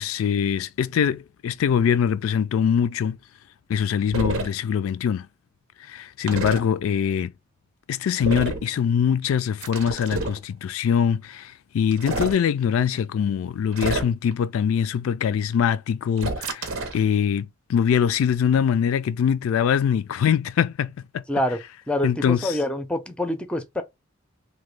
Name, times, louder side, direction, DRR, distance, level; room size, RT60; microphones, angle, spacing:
voice 1, 0.0-3.2 3.7-5.3 5.9-7.3 7.9-21.2 22.0-22.6, left 7 dB, 85° left, 0.3 m, -23 dB
sound 1, 4.1-4.5 6.3-6.6 8.2-8.7 9.6-10.4 11.9-12.4 13.7-14.3 16.2-17.0, right 3 dB, 90° right, 0.7 m, -28 dB
voice 2, 21.3-21.6 21.9-23.8, left 1 dB, 5° left, 0.4 m, -26 dB
2.9 x 2.2 x 3.2 m
head